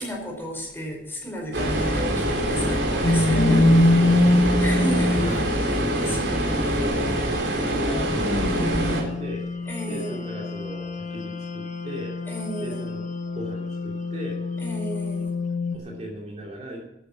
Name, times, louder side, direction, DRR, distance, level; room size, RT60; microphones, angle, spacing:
voice 1, 0.0-3.6 4.6-5.3 5.6-6.4 9.7-10.2 12.3-12.8 14.6-15.3, equal, 10° left, 0 dB, 4.7 m, -33 dB
sound 1, 1.5-9.0, equal, 65° right, 3.6 m, -24 dB
sound 2, 3.0-5.5 7.9-15.8, left 1 dB, 40° left, 1.4 m, -24 dB
voice 2, 3.4-4.8 5.8-7.1 7.6-9.4 9.9-12.2 12.6-13.1 13.3-14.4 15.7-16.9, equal, 35° right, -1 dB, 2.6 m, -38 dB
12.5 x 10.0 x 6.2 m, 0.96 s
head